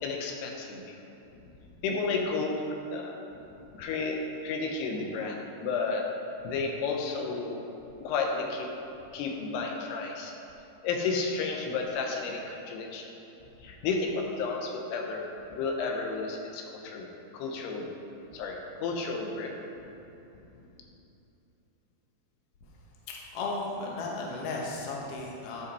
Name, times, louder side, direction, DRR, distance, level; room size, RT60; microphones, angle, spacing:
voice 1, 0.0-0.8 1.8-3.1 3.7-4.2 4.4-6.1 6.4-7.6 8.0-8.7 9.1-10.3 10.8-13.1 13.6-15.2 15.5-17.1 17.3-17.9 18.3-19.5, left 4 dB, 85° left, 2 dB, 2.9 m, -32 dB
voice 2, 23.1-25.6, left 3 dB, 70° left, -3 dB, 1.4 m, -35 dB
11.0 x 5.4 x 4.2 m, 3.0 s
omnidirectional pair, 4.6 m